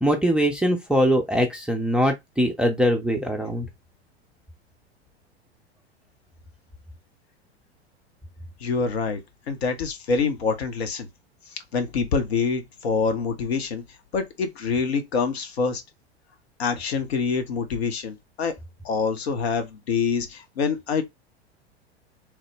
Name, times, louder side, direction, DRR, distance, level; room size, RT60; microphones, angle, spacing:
voice 1, 0.0-3.7, equal, 5° right, 0.5 m, -22 dB
voice 2, 8.6-9.2 9.5-11.1 11.5-13.8 14.1-15.8 16.6-18.5 18.8-21.0, left 5 dB, 65° left, 0.9 m, -26 dB
3.1 x 2.0 x 3.2 m
figure-of-eight pair, 90°, 33 cm